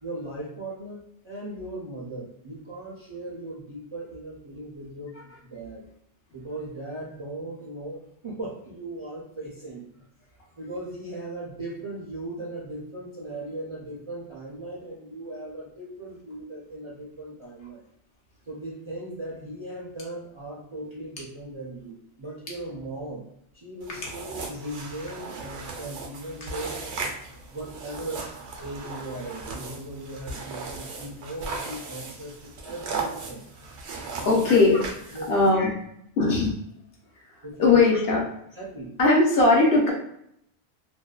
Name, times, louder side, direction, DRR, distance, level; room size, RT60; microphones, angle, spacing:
voice 1, 0.0-5.1 5.5-5.9 6.3-9.8 10.6-17.8 18.5-23.3 23.5-26.9 27.5-28.3 28.6-33.4 34.1-34.5 35.1-35.7 37.4-37.9 38.6-38.9, right 1 dB, 45° right, -6 dB, 0.4 m, -38 dB
sound 1, 23.8-35.5, right 4 dB, 90° right, 0.9 m, -37 dB
voice 2, 34.2-34.8 35.3-35.7 36.2-36.5 37.6-38.2 39.0-39.9, left 3 dB, 65° left, -2 dB, 0.8 m, -19 dB
2.5 x 2.1 x 2.3 m, 0.73 s
omnidirectional pair, 1.1 m